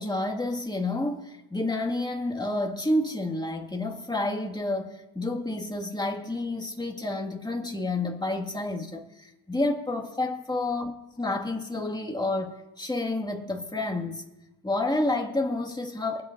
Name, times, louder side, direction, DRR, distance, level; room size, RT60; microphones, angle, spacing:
voice 1, 0.0-10.9 11.2-14.2 14.6-16.2, left 2 dB, 10° left, 2.0 m, -29 dB
23.5 x 8.6 x 2.6 m
cardioid pair, 65°, 39 cm